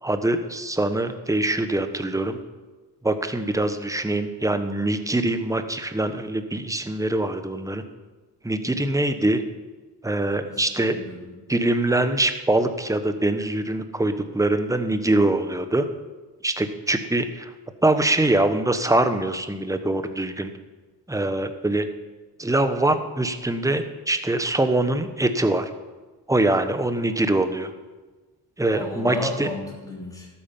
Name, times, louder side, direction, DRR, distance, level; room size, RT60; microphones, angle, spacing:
voice 1, 0.0-2.4 3.0-7.8 8.4-9.4 10.0-11.0 11.5-15.9 16.4-17.5 17.8-20.5 21.1-21.8 22.4-25.7 26.3-27.7 28.6-29.5, right 2 dB, 10° right, 9 dB, 1.1 m, -23 dB
voice 2, 10.4-11.3 28.7-30.3, left 1 dB, 10° left, -3 dB, 3.3 m, -33 dB
12.5 x 8.9 x 5.4 m, 1.2 s
cardioid pair, 65°, 42 cm